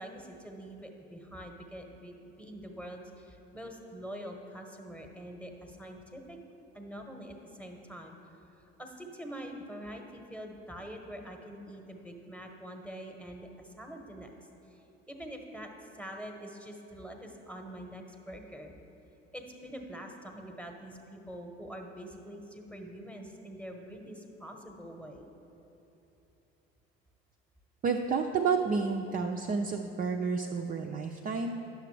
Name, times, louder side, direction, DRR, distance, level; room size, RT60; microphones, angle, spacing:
voice 1, 0.0-6.4 6.7-8.2 8.6-14.3 14.7-15.7 16.0-18.7 19.3-25.3, equal, 5° left, 3 dB, 1.0 m, -45 dB
voice 2, 27.8-31.6, right 5 dB, 25° right, 3 dB, 0.4 m, -30 dB
10.5 x 6.6 x 3.2 m, 3.0 s
hypercardioid pair, 60°, 33 cm